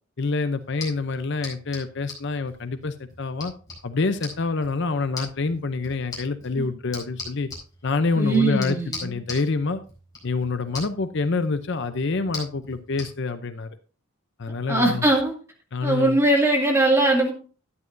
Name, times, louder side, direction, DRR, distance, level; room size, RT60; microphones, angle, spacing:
voice 1, 0.2-3.5 3.8-7.5 7.8-9.8 10.2-13.7 14.4-15.1 15.7-16.2, left 3 dB, 55° left, 10 dB, 0.6 m, -26 dB
sound 1, 0.6-13.1, left 3 dB, 15° left, 4.5 m, -41 dB
voice 2, 8.2-9.2 14.7-15.3 15.8-17.3, right 2 dB, 10° right, 0 dB, 2.3 m, -20 dB
12.5 x 10.0 x 2.6 m, 0.37 s
head